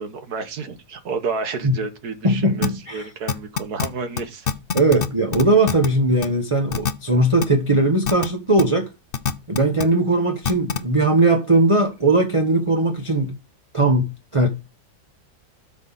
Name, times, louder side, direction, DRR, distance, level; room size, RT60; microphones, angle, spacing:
voice 1, 0.0-4.5, right 4 dB, 70° right, 1.7 m, -30 dB
voice 2, 2.2-3.0 4.7-8.9 9.5-13.3 13.7-14.5, right 2 dB, 20° right, 1.1 m, -19 dB
sound 1, 2.6-2.7 3.3-3.9 4.2-4.3 4.5-5.1 5.3-5.9 6.2-6.3 6.7-6.9 7.4-7.5 8.0-8.3 8.6-8.7 9.1-9.8 10.4-10.8, left 6 dB, 45° left, 0.8 m, -23 dB
12.5 x 5.7 x 4.0 m
omnidirectional pair, 1.7 m